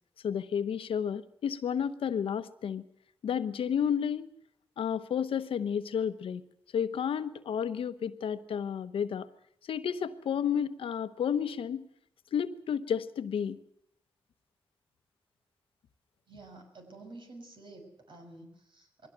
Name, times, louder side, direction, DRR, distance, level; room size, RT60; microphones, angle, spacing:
voice 1, 0.2-2.8 3.2-4.3 4.8-6.4 6.7-9.3 9.6-11.9 12.3-13.6, left 8 dB, 80° left, 12 dB, 1.0 m, -31 dB
voice 2, 16.3-19.1, right 2 dB, 60° right, 3 dB, 5.9 m, -50 dB
21.5 x 16.5 x 8.0 m, 0.72 s
cardioid pair, 50°, 9 cm